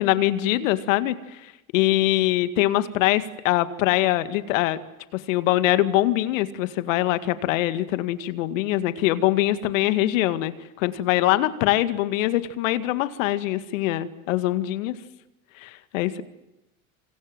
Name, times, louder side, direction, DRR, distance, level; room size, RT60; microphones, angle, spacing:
voice 1, 0.0-4.8 5.1-10.5 10.8-15.0 15.6-16.2, left 15 dB, 70° left, 13 dB, 2.1 m, -23 dB
28.0 x 25.5 x 7.8 m, 0.94 s
hypercardioid pair, 80°, 41 cm